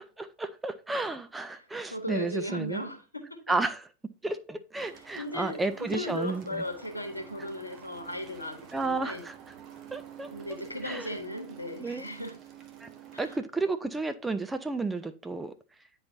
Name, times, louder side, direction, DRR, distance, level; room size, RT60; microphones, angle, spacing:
voice 1, 0.2-2.8 3.5-3.8 4.2-6.6 8.7-9.3 9.9-10.3 10.8-11.1 11.8-12.1 12.8-12.9 13.2-15.5, right 3 dB, 10° right, 0.5 m, -32 dB
voice 2, 1.5-3.4 4.8-9.2 10.3-12.4 13.1-13.4, left 1 dB, 90° left, 1.1 m, -37 dB
sound 1, 4.8-13.4, right 9 dB, 35° right, 0.8 m, -49 dB
9.5 x 3.9 x 2.7 m
figure-of-eight pair, 90°, 0 cm